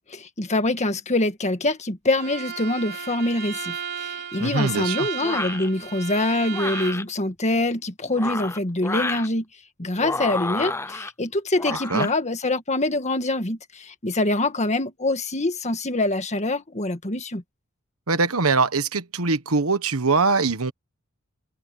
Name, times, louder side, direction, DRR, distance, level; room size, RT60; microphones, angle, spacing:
voice 1, 0.0-9.4 9.8-17.4, left 2 dB, 30° left, 1.7 m, -25 dB
Bowed string instrument, 2.2-7.1, right 7 dB, 50° right, 3.9 m, -34 dB
voice 2, 4.4-5.1 11.7-12.1 18.1-20.7, right 4 dB, 75° right, 1.3 m, -22 dB
sound 1, 5.2-5.7 6.5-7.0 8.0-9.3 10.0-11.1 11.6-12.1, left 2 dB, 10° left, 0.7 m, -30 dB
open air
head